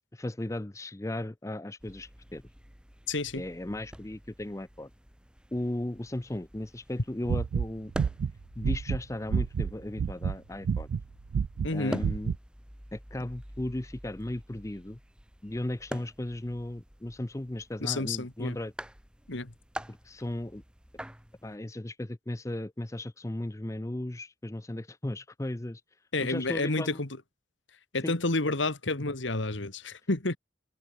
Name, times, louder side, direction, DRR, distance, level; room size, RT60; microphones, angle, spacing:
voice 1, 0.1-2.4 3.3-4.9 5.5-7.9 8.6-10.9 11.7-12.3 12.9-15.0 15.4-18.7 19.9-20.6 21.4-25.8 26.2-27.0 28.0-28.2, left 1 dB, 15° left, 0.5 m, -36 dB
sound 1, 1.8-21.6, equal, 5° right, 2.1 m, -46 dB
voice 2, 3.1-3.4 11.6-12.0 17.8-18.6 19.3-19.5 26.1-27.1 27.9-30.4, left 2 dB, 75° left, 2.0 m, -30 dB
sound 2, 7.2-9.7 10.0-10.4 10.6-11.0 11.3-11.7 12.0-12.4, right 6 dB, 70° right, 0.3 m, -28 dB
open air
head